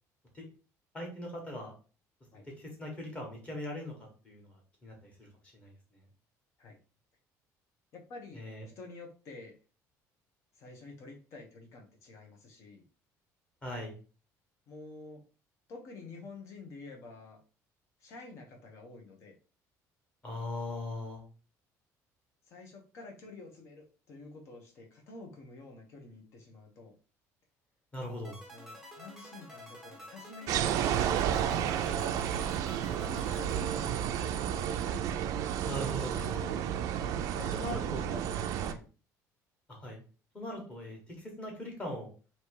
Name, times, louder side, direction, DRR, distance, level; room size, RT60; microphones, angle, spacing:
voice 1, 0.9-1.7 2.6-5.3 5.5-5.7 8.3-8.7 13.6-13.9 20.2-21.2 27.9-28.4 35.6-36.6 37.5-38.1 39.7-40.0 40.3-42.1, left 1 dB, 20° left, 0 dB, 1.5 m, -40 dB
voice 2, 7.9-8.4 8.7-9.5 10.6-12.8 14.7-15.2 15.7-17.4 18.0-19.3 22.5-26.9 28.5-31.9 32.7-35.0 37.2-38.8, left 3 dB, 45° left, 2 dB, 1.2 m, -49 dB
sound 1, 28.2-34.5, left 1 dB, 5° right, 0.7 m, -50 dB
sound 2, 30.5-38.7, right 9 dB, 60° right, 0.4 m, -31 dB
3.2 x 2.9 x 4.6 m, 0.36 s
cardioid pair, 170°, 6 cm